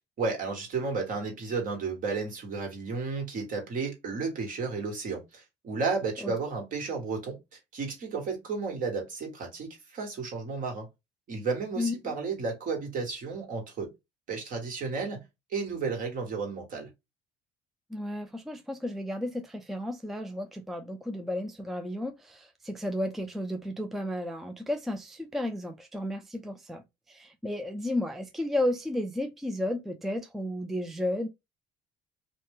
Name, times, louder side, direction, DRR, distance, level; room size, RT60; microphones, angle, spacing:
voice 1, 0.2-10.9 11.3-13.9 14.3-15.2 15.5-16.9, right 4 dB, 55° right, 1.5 m, -33 dB
voice 2, 11.8-12.1 17.9-26.8 27.1-31.3, left 1 dB, ahead, 0.4 m, -33 dB
2.6 x 2.1 x 3.4 m
supercardioid pair, 90°, 17 cm